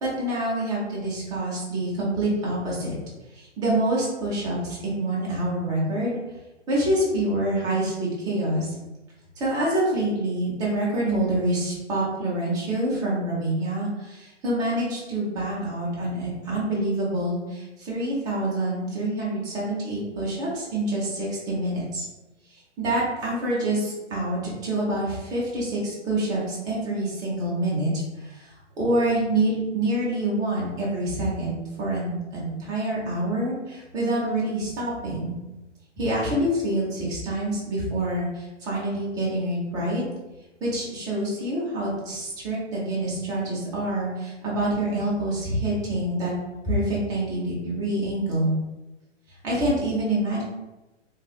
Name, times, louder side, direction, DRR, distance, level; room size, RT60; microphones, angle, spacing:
voice 1, 0.0-2.9 3.3-6.2 6.7-8.7 9.4-22.0 22.8-28.5 28.8-35.3 36.0-40.0 40.6-46.3 46.6-48.5 49.4-50.4, right 1 dB, 10° right, -5 dB, 0.5 m, -26 dB
3.3 x 2.5 x 2.3 m, 1.0 s
figure-of-eight pair, 120°, 36 cm